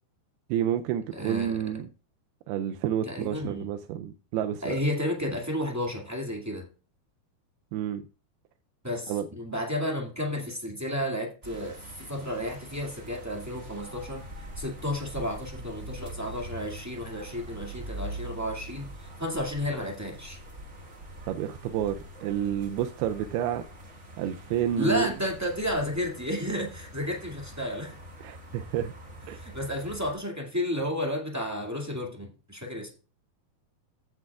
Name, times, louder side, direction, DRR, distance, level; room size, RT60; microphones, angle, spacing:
voice 1, 0.5-1.9 2.5-4.8 7.7-8.0 9.1-9.3 21.3-23.7 24.2-25.1 28.2-28.9 29.3-29.4, right 10 dB, 85° right, 2.5 m, -29 dB
voice 2, 1.1-1.6 3.0-3.7 4.6-6.6 8.8-14.2 14.5-20.4 24.8-28.0 29.3-32.9, left 1 dB, 10° right, 0.7 m, -32 dB
sound 1, 11.4-30.1, right 1 dB, 40° right, 1.0 m, -44 dB
15.5 x 7.6 x 2.4 m
omnidirectional pair, 4.4 m